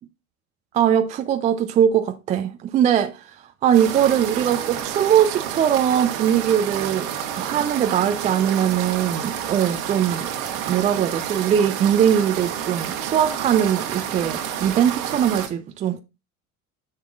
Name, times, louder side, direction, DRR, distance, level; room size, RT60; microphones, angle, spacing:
voice 1, 0.7-3.3 3.6-7.1 7.4-10.3 10.7-16.0, right 9 dB, 20° right, 0.3 m, -21 dB
sound 1, 3.7-15.5, right 9 dB, 60° right, 1.4 m, -29 dB
10.0 x 5.9 x 2.4 m
figure-of-eight pair, 70°, 46 cm